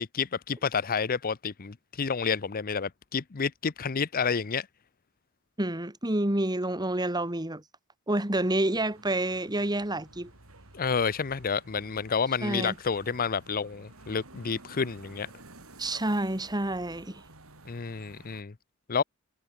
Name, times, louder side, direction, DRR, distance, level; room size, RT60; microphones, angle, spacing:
voice 1, 0.0-4.7 10.7-15.3 17.7-18.5 18.9-19.0, left 5 dB, 45° left, 0.7 m, -30 dB
voice 2, 5.6-7.6 8.1-10.3 12.4-12.7 15.8-17.2, right 1 dB, 20° right, 2.5 m, -28 dB
sound 1, 8.3-18.4, right 2 dB, 70° right, 4.6 m, -53 dB
head